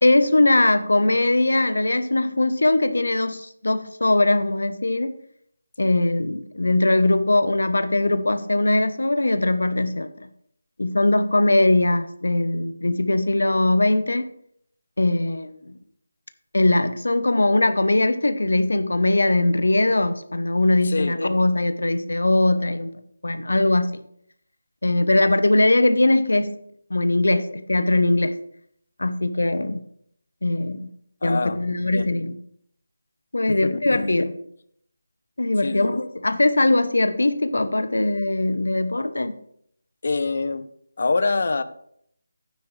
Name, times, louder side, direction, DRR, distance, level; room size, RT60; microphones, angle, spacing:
voice 1, 0.0-5.2 5.8-10.1 10.8-14.2 15.0-15.7 16.5-22.9 23.2-23.9 24.8-26.6 26.9-28.3 29.0-29.8 30.4-30.9 31.2-32.3 33.3-34.4 35.4-39.4, left 2 dB, 90° left, 11 dB, 0.9 m, -20 dB
voice 2, 20.8-21.2 31.2-31.6 31.9-32.1 33.6-34.1 35.6-36.0 40.0-40.7 41.0-41.6, left 3 dB, 50° left, 14 dB, 0.7 m, -25 dB
11.5 x 9.4 x 3.3 m, 0.70 s
figure-of-eight pair, 175°, 0 cm